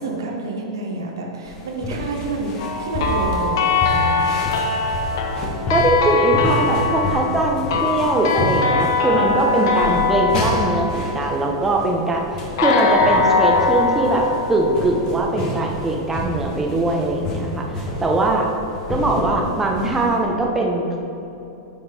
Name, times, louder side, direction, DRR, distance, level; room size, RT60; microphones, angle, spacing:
voice 1, 0.0-4.6, right 2 dB, 75° right, 0 dB, 1.2 m, -29 dB
sound 1, 1.5-20.2, left 1 dB, 35° left, 1.5 m, -29 dB
sound 2, 2.6-11.8 12.6-15.5, left 4 dB, 60° left, 0.8 m, -22 dB
voice 2, 5.7-18.5 18.9-21.0, right 2 dB, 15° right, 0 dB, 0.9 m, -21 dB
8.8 x 5.0 x 4.3 m, 2.9 s
figure-of-eight pair, 95°, 2 cm